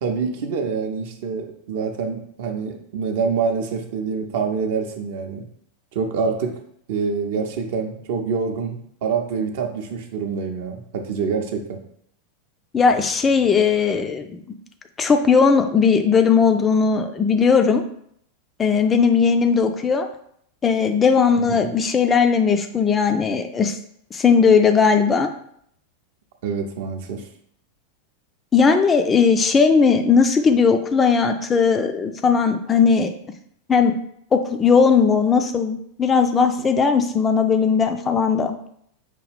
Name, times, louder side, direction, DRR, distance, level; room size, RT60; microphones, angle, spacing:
voice 1, 0.0-5.4 5.9-6.6 6.9-11.8 21.4-21.7 26.4-27.3, right 5 dB, 50° right, 4 dB, 0.5 m, -26 dB
voice 2, 12.7-14.4 15.0-17.8 18.6-20.1 20.6-23.8 24.1-25.3 28.5-33.1 33.7-33.9 34.3-38.6, left 5 dB, 20° left, 6 dB, 0.3 m, -18 dB
5.1 x 2.3 x 3.3 m, 0.68 s
figure-of-eight pair, 90°, 0 cm